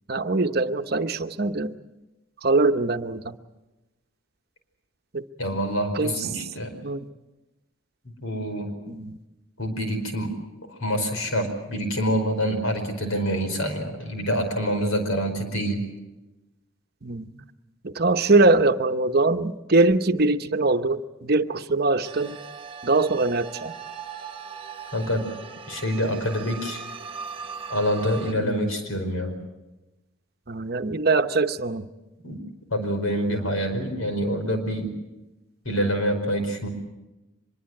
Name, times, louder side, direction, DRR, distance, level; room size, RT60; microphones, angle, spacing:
voice 1, 0.1-1.7 2.4-3.4 5.1-5.2 5.9-6.3 6.8-7.1 8.9-9.2 17.0-17.5 17.8-22.4 22.8-23.7 28.4-28.7 30.5-31.9, right 3 dB, 45° right, 9 dB, 0.9 m, -22 dB
voice 2, 5.4-6.7 8.2-8.7 9.6-10.3 10.8-15.8 24.9-25.2 25.7-26.8 27.7-29.4 32.2-32.4 32.7-34.9 35.6-36.7, equal, 85° left, 6 dB, 4.9 m, -26 dB
sound 1, 22.0-28.3, right 5 dB, 25° right, 1.1 m, -39 dB
24.5 x 22.0 x 7.8 m, 1.0 s
head